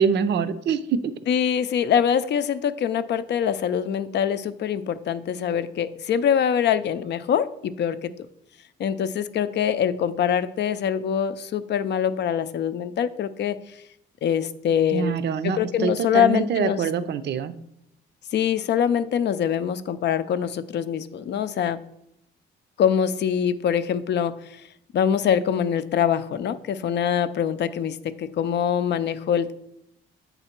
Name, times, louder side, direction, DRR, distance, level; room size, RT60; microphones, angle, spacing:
voice 1, 0.0-1.1 14.9-17.5, right 6 dB, 60° right, 12 dB, 0.5 m, -24 dB
voice 2, 1.3-8.1 8.8-13.6 14.2-15.1 15.4-16.8 18.3-21.8 22.8-24.3 24.9-29.6, left 8 dB, 60° left, 13 dB, 0.5 m, -24 dB
7.9 x 4.0 x 4.4 m, 0.79 s
cardioid pair, 90°, 20 cm